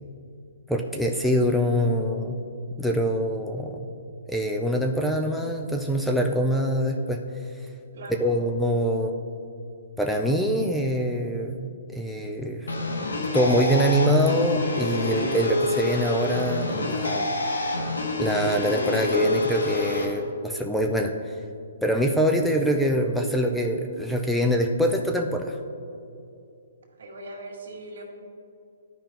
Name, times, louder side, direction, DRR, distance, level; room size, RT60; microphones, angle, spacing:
voice 1, 0.7-2.4 2.8-3.8 4.3-7.2 8.2-9.1 10.0-12.7 13.3-17.3 18.2-21.4 21.8-25.6, equal, ahead, 1 dB, 0.4 m, -24 dB
sound 1, 12.7-20.0, left 2 dB, 85° left, 1.2 m, -27 dB
voice 2, 15.2-15.5 26.9-28.0, right 1 dB, 70° right, 0 dB, 1.9 m, -40 dB
13.0 x 5.1 x 2.9 m, 2.6 s
hypercardioid pair, 140°, 0 cm